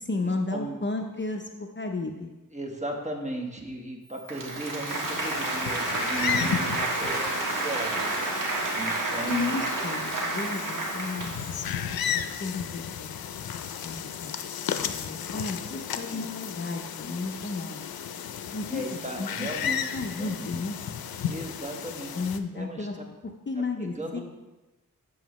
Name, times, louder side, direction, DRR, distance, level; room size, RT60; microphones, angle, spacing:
voice 1, 0.0-2.3 9.3-11.4 12.4-13.2 13.8-14.3 14.7-17.9 18.5-19.5 19.9-20.8 22.1-23.0 23.5-24.2, left 3 dB, 35° left, 3 dB, 0.6 m, -33 dB
voice 2, 2.5-8.1 8.7-9.6 16.1-16.3 18.7-20.5 21.2-22.2 22.5-23.0 23.8-24.2, right 1 dB, 20° right, 1 dB, 1.2 m, -36 dB
Applause, 4.2-11.6, right 2 dB, 65° right, 1.3 m, -30 dB
sound 1, 4.9-22.4, left 8 dB, 85° left, 0.5 m, -34 dB
7.7 x 7.1 x 3.1 m, 1.1 s
wide cardioid pair, 70°, 35 cm